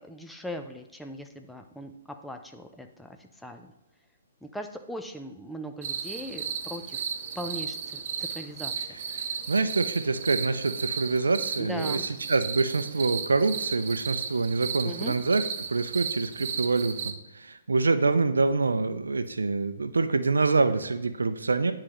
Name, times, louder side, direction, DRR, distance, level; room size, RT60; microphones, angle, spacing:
voice 1, 0.0-3.7 4.4-7.0 7.3-8.7 9.1-9.3 11.6-12.1 14.8-15.2, equal, 5° left, 5 dB, 0.6 m, -39 dB
sound 1, 5.8-17.1, right 7 dB, 50° right, 0.7 m, -35 dB
voice 2, 9.2-12.0 12.3-15.4 15.7-21.7, right 3 dB, 90° right, 9 dB, 0.6 m, -26 dB
9.7 x 3.7 x 3.1 m, 0.97 s
hypercardioid pair, 135°, 0 cm